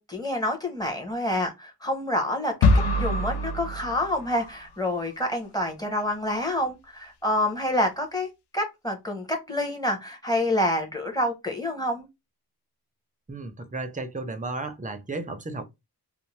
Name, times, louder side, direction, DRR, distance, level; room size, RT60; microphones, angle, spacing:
voice 1, 0.0-2.7 3.0-8.3 8.5-12.1, left 1 dB, 10° left, 0.9 m, -27 dB
sound 1, 2.6-4.6, left 2 dB, 90° left, 0.5 m, -24 dB
voice 2, 13.3-15.6, right 3 dB, 20° right, 0.5 m, -34 dB
2.6 x 2.1 x 3.1 m
wide cardioid pair, 110°, 39 cm